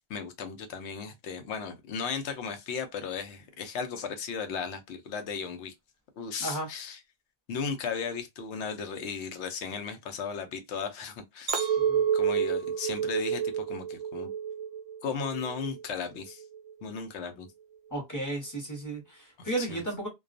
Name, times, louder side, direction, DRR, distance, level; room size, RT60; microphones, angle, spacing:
voice 1, 0.0-5.7 6.2-7.0 7.5-11.8 12.1-14.3 15.0-16.4 16.8-17.5 19.4-19.8, left 6 dB, 85° left, 0.9 m, -36 dB
Chink clink, 11.5-15.8 16.3-16.7, right 8 dB, 45° right, 0.5 m, -29 dB
voice 2, 17.9-20.1, right 2 dB, 20° left, 0.9 m, -34 dB
2.3 x 2.2 x 2.5 m
omnidirectional pair, 1.1 m